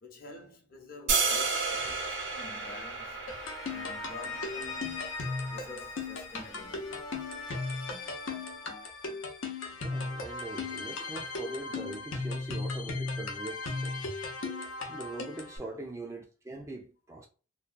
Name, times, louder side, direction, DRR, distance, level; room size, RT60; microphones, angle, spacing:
voice 1, 0.0-3.2 3.7-4.9 5.4-6.9 15.6-15.9, left 1 dB, 45° left, 0.7 m, -49 dB
sound 1, 1.1-7.2, right 4 dB, 80° right, 1.2 m, -34 dB
sound 2, 3.3-15.6, left 3 dB, 90° left, 0.7 m, -36 dB
voice 2, 9.8-14.1 14.9-17.3, right 2 dB, 15° right, 0.3 m, -42 dB
2.7 x 2.2 x 2.4 m
head